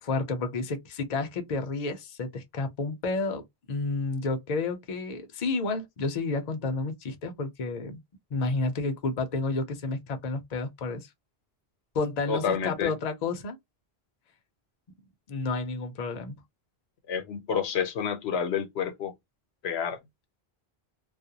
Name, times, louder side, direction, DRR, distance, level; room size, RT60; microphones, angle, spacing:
voice 1, 0.0-8.0 8.3-11.1 11.9-13.6 15.3-16.4, left 3 dB, 50° left, 0.6 m, -31 dB
voice 2, 12.3-12.9 17.1-19.1 19.6-20.0, left 7 dB, 85° left, 0.9 m, -29 dB
2.4 x 2.1 x 2.7 m
omnidirectional pair, 1.0 m